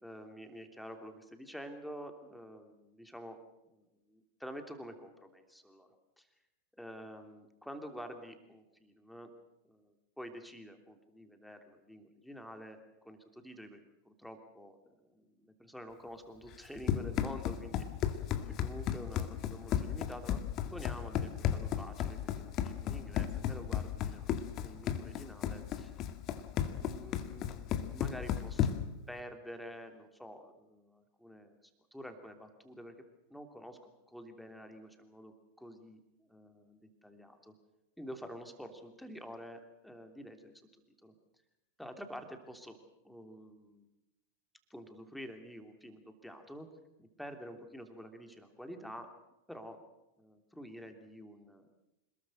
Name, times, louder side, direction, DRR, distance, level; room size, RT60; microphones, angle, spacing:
voice 1, 0.0-3.4 3.6-5.9 6.2-6.3 6.8-9.3 9.7-12.8 13.0-17.8 18.5-20.4 20.7-24.3 24.6-26.0 26.8-27.7 27.9-28.7 29.1-31.6 31.9-32.9 33.3-33.8 34.1-37.5 38.0-40.6 41.0-41.1 41.8-42.8 43.0-43.9 44.7-46.7 47.0-49.1 49.5-49.8 50.2-51.7, equal, ahead, 6 dB, 3.0 m, -48 dB
Run, 16.5-29.0, left 10 dB, 35° left, 1.9 m, -34 dB
27.0 x 21.0 x 6.5 m, 0.92 s
figure-of-eight pair, 90°, 0 cm